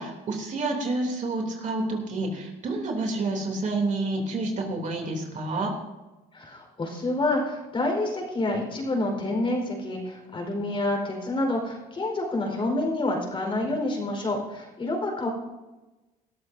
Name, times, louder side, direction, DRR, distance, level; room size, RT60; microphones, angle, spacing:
voice 1, 0.0-5.7, right 2 dB, 50° right, 1 dB, 3.1 m, -29 dB
voice 2, 6.3-15.3, left 2 dB, 30° left, 1 dB, 4.7 m, -28 dB
21.0 x 13.0 x 2.7 m, 1.1 s
cardioid pair, 110°, 17 cm